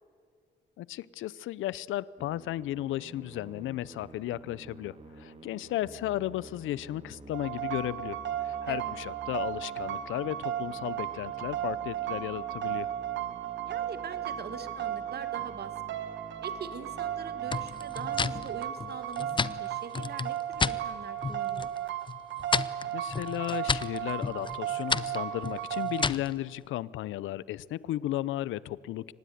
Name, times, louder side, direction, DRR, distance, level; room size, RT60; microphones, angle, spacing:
voice 1, 0.8-12.9 22.9-29.1, left 14 dB, 80° left, 21 dB, 0.6 m, -34 dB
Musical instrument, 2.2-19.3, right 3 dB, 30° right, 2.9 m, -50 dB
sound 1, 7.3-26.1, right 11 dB, 70° right, 1.6 m, -35 dB
voice 2, 13.6-16.0 16.4-21.7, right 6 dB, 55° right, 11 dB, 2.0 m, -43 dB
sound 2, 17.5-20.8 21.2-21.8 22.1-26.3, left 5 dB, 25° left, 0.7 m, -32 dB
25.0 x 19.5 x 9.4 m, 2.1 s
cardioid pair, 90°, 20 cm